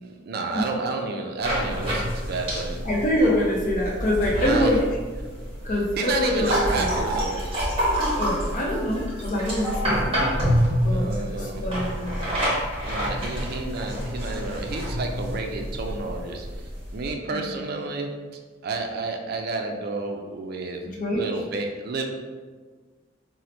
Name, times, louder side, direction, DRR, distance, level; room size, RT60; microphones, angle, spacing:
voice 1, 0.0-2.8 4.4-4.7 6.0-7.4 10.8-11.6 12.5-16.5 16.9-18.1 18.6-20.8 21.1-22.0, right 3 dB, 55° right, 3 dB, 0.4 m, -30 dB
sound 1, 1.4-17.1, equal, 30° right, 0.9 m, -28 dB
voice 2, 2.8-4.9 5.6-6.9 8.2-10.3 10.8-12.2 17.3-17.6 20.9-21.2, left 1 dB, 45° left, -2 dB, 0.6 m, -25 dB
2.9 x 2.0 x 4.0 m, 1.4 s
head